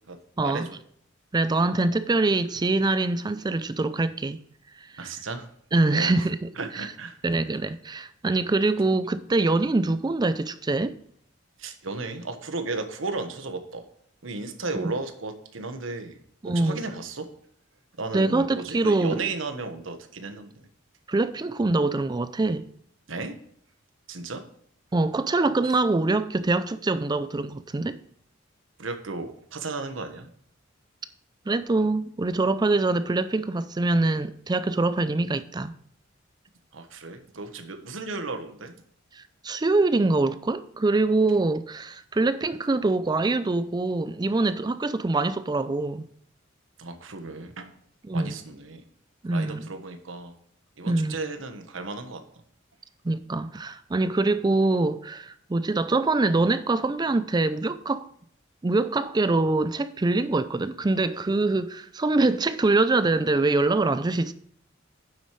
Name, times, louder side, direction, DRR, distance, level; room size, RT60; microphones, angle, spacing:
voice 1, 0.1-0.8 5.0-5.5 5.9-6.3 6.6-7.2 11.6-13.8 14.2-16.2 16.4-17.3 18.0-20.5 23.1-23.3 24.1-24.4 28.8-30.3 36.7-38.7 46.8-47.7 48.1-48.8 49.3-50.3 50.8-52.2, right 3 dB, 90° right, 1.3 m, -34 dB
voice 2, 1.3-4.4 4.8-5.0 5.7-6.8 7.2-11.0 14.8-14.9 16.4-16.8 18.1-19.2 21.1-22.7 24.9-28.0 31.5-35.7 39.1-46.0 48.0-48.3 49.2-49.7 50.9-51.2 53.0-58.1 58.6-64.3, right 2 dB, 20° right, 0.4 m, -24 dB
9.5 x 7.5 x 3.2 m
head